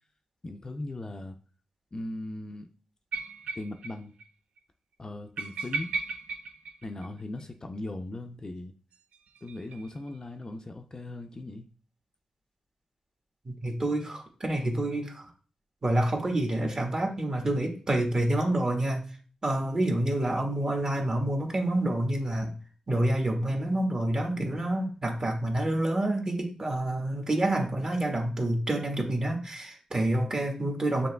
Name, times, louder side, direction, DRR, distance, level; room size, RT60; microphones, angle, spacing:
voice 1, 0.4-1.4 1.9-2.7 3.6-4.1 5.0-5.9 6.8-8.7 9.4-11.7, left 2 dB, 35° left, 0.5 m, -38 dB
sound 1, 3.1-3.9 4.2-4.3 4.6-4.7 5.4-7.4 8.9-10.2, right 4 dB, 85° right, 0.4 m, -36 dB
voice 2, 13.4-15.3 15.8-19.0 19.4-22.5 22.9-31.1, right 1 dB, 35° right, 1.3 m, -28 dB
6.8 x 3.0 x 2.2 m
cardioid pair, 55°, 2 cm